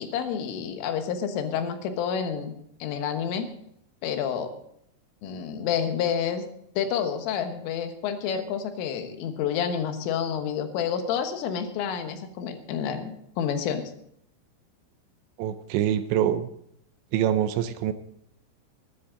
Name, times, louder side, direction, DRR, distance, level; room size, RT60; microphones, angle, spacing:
voice 1, 0.0-3.5 4.0-4.5 5.2-6.5 6.8-13.8, left 8 dB, 90° left, 7 dB, 3.9 m, -29 dB
voice 2, 15.4-16.5 17.1-17.9, right 10 dB, 80° right, 10 dB, 2.8 m, -25 dB
20.5 x 10.5 x 3.8 m, 0.72 s
omnidirectional pair, 5.6 m